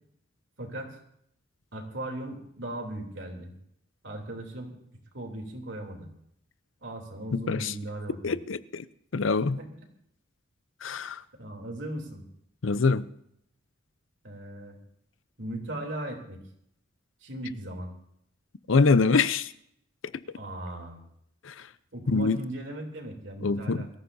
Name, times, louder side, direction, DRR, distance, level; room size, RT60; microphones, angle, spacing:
voice 1, 0.6-1.0 1.7-3.5 4.0-4.7 5.1-6.1 6.8-8.4 9.6-9.7 11.4-12.2 14.2-14.8 15.4-16.4 17.2-17.9 20.3-21.0 21.9-23.9, right 1 dB, 60° right, 3.2 m, -38 dB
voice 2, 7.3-7.7 8.2-8.8 9.1-9.6 10.8-11.2 12.6-13.0 18.7-19.5 21.5-21.6 22.1-22.4 23.4-23.9, left 4 dB, 75° left, 0.6 m, -24 dB
23.0 x 14.5 x 2.7 m
head